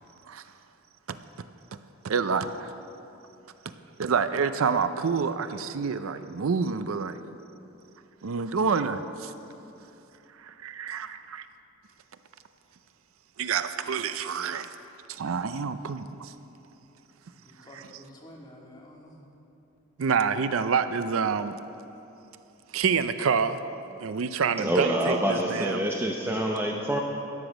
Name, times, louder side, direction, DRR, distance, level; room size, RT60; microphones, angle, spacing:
voice 1, 1.1-1.5 2.0-2.7 4.0-7.2 8.2-9.3 10.4-11.1 13.4-14.7 15.1-16.3 17.7-17.9 20.0-21.5 22.7-23.6 24.0-25.9, right 5 dB, 70° right, 11 dB, 0.5 m, -27 dB
voice 2, 17.2-19.2, equal, 20° left, -2 dB, 1.9 m, -49 dB
voice 3, 24.6-27.0, right 1 dB, 10° right, 0 dB, 0.8 m, -26 dB
13.0 x 10.5 x 6.1 m, 2.9 s
head